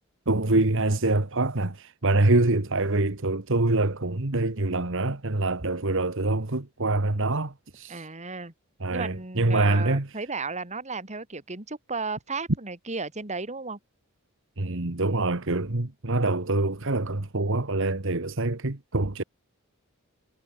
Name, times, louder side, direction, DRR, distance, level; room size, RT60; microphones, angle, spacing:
voice 1, 0.3-8.0 8.8-10.1 14.6-19.2, right 2 dB, 65° right, 1.7 m, -25 dB
voice 2, 7.9-8.5 8.9-13.8, right 4 dB, 35° right, 3.3 m, -34 dB
head